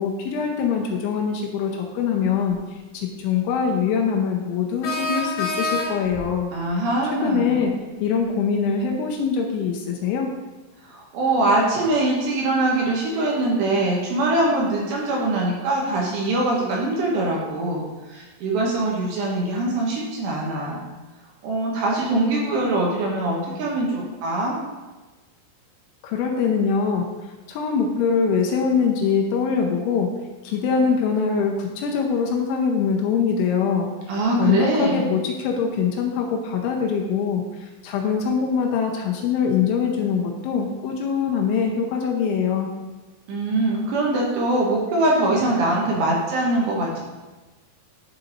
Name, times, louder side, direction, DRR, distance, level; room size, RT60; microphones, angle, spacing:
voice 1, 0.0-2.6 2.9-6.5 7.2-10.3 26.0-27.1 27.5-30.2 30.4-33.9 34.4-37.5 37.8-42.7, left 6 dB, 80° left, 1 dB, 2.9 m, -23 dB
sound 1, 4.8-6.2, left 3 dB, 60° left, 2.1 m, -26 dB
voice 2, 6.5-7.7 10.8-20.8 21.4-24.6 34.1-35.1 43.3-47.0, right 2 dB, 70° right, -3 dB, 3.0 m, -23 dB
11.5 x 4.0 x 3.9 m, 1.2 s
omnidirectional pair, 5.7 m